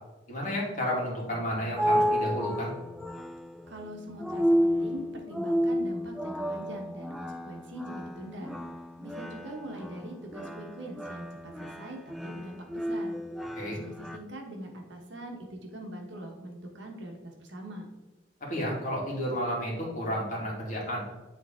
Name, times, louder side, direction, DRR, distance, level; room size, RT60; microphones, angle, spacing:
voice 1, 0.3-2.7 13.5-13.8 18.5-21.0, equal, 40° left, -4 dB, 2.0 m, -31 dB
sound 1, 1.3-14.2, equal, ahead, 0.3 m, -31 dB
voice 2, 3.7-8.5 9.0-13.2 13.7-17.9, right 1 dB, 70° right, 1 dB, 1.2 m, -42 dB
8.4 x 3.6 x 3.7 m, 1.1 s
head